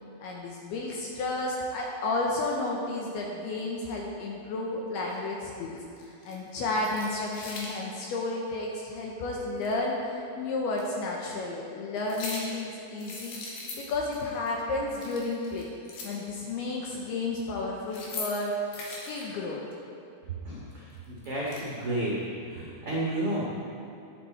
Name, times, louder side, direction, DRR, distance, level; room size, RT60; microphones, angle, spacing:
voice 1, 0.2-5.8 6.3-10.0 10.4-13.4 13.8-15.7 16.0-18.6 19.1-19.6, left 2 dB, 75° left, -2 dB, 2.5 m, -32 dB
sound 1, 5.1-5.2 6.0-6.4 6.7-7.7 9.6-9.7 10.7-10.8 12.0-12.6 13.0-14.2 14.5-14.6 14.9-16.3 17.7-19.2 20.9-21.6, left 3 dB, 60° left, 3.0 m, -40 dB
voice 2, 20.4-22.1 22.5-23.5, right 1 dB, 80° right, -7 dB, 1.2 m, -32 dB
13.0 x 9.0 x 4.2 m, 2.6 s
omnidirectional pair, 5.4 m